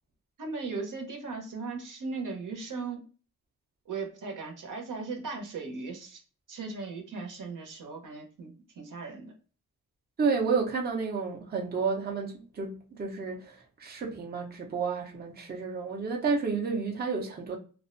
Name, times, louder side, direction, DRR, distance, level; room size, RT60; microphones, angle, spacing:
voice 1, 0.4-3.0 3.9-6.2 6.5-9.3, right 4 dB, 70° right, 0.8 m, -37 dB
voice 2, 10.2-17.6, right 5 dB, 30° right, 0.6 m, -31 dB
2.4 x 2.1 x 2.4 m
cardioid pair, 90°, 33 cm